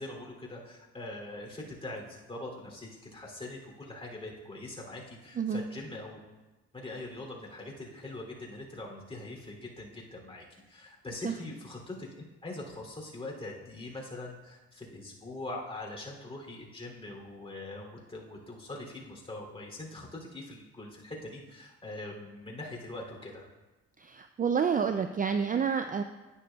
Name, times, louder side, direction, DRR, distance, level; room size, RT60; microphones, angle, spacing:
voice 1, 0.0-6.2 6.7-23.5, left 2 dB, 20° left, -1 dB, 2.8 m, -42 dB
voice 2, 24.0-26.0, right 6 dB, 30° right, 8 dB, 0.4 m, -29 dB
11.0 x 9.9 x 2.3 m, 1.1 s
cardioid pair, 90°, 30 cm